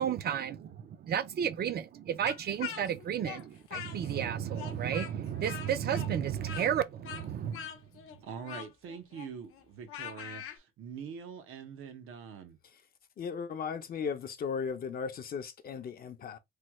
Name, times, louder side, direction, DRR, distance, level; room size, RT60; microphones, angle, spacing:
voice 1, 0.0-7.7, right 9 dB, 50° right, 0.4 m, -32 dB
Speech, 2.3-4.3 4.5-10.6, left 9 dB, 90° left, 0.7 m, -43 dB
voice 2, 8.2-12.6, right 7 dB, 80° right, 0.8 m, -44 dB
voice 3, 13.2-16.4, left 6 dB, 45° left, 0.5 m, -36 dB
3.2 x 2.2 x 3.0 m
cardioid pair, 140°, 21 cm